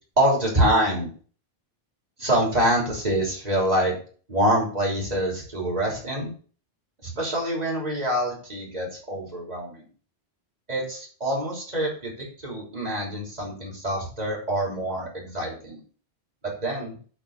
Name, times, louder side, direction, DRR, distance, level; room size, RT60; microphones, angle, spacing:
voice 1, 0.2-1.1 2.2-3.9 4.3-6.3 7.0-9.8 10.7-15.8 16.4-17.0, right 1 dB, 40° right, -3 dB, 3.5 m, -25 dB
9.0 x 4.1 x 6.5 m, 0.41 s
omnidirectional pair, 1.1 m